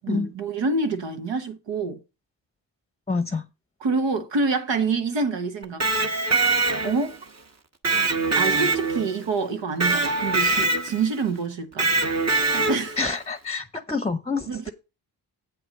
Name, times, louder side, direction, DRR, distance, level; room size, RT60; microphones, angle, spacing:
voice 1, 0.0-2.0 3.8-5.8 6.8-7.1 8.4-11.9 12.5-13.0 14.5-14.7, right 4 dB, 75° right, 1.1 m, -26 dB
voice 2, 3.1-3.4 13.0-14.7, left 4 dB, 15° left, 0.7 m, -27 dB
Electric guitar, 5.6-7.2 7.8-9.2 9.8-11.1 11.8-13.0, right 3 dB, 35° right, 1.2 m, -23 dB
7.9 x 4.5 x 6.5 m
supercardioid pair, 45°, 45 cm